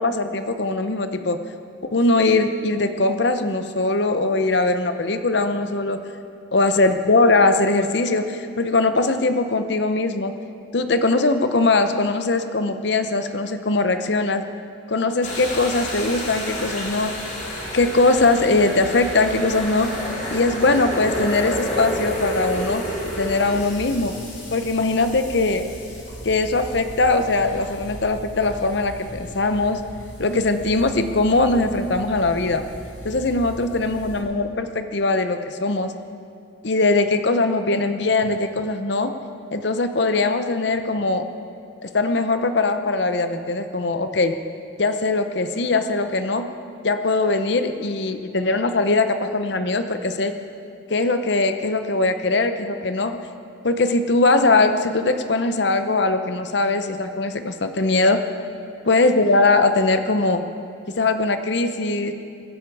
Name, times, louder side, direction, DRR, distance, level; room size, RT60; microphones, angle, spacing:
voice 1, 0.0-1.4 1.9-6.0 6.5-10.3 10.7-14.4 14.9-17.1 17.7-20.0 20.3-22.8 23.2-24.1 24.5-25.7 26.2-29.8 30.2-32.7 33.0-35.9 36.6-39.1 39.5-41.3 41.8-44.4 44.8-46.5 46.8-50.3 50.9-53.2 53.6-58.2 58.9-60.4 61.0-62.1, left 3 dB, 60° left, 8 dB, 0.8 m, -21 dB
sound 1, 15.2-34.2, equal, 35° left, 2.7 m, -32 dB
23.5 x 10.0 x 4.8 m, 2.5 s
head